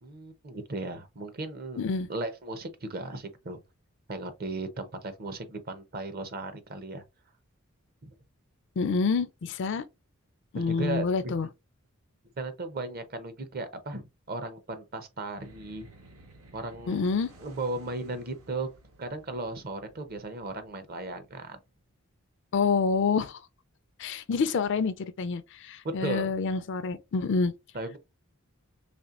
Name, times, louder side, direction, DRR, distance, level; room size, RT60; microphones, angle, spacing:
voice 1, 0.0-1.8 2.1-3.6 4.1-7.0 8.0-8.1 10.5-11.3 12.4-15.9 16.5-17.0 17.4-18.7 19.0-21.6 25.8-26.3 27.7-28.0, right 2 dB, 45° right, 0.7 m, -36 dB
voice 2, 1.8-2.1 8.8-9.8 10.5-11.5 16.9-17.3 22.5-23.4 24.0-27.5, left 4 dB, 55° left, 0.4 m, -27 dB
sound 1, 15.3-21.9, right 1 dB, 75° right, 1.4 m, -56 dB
4.2 x 3.2 x 2.4 m
head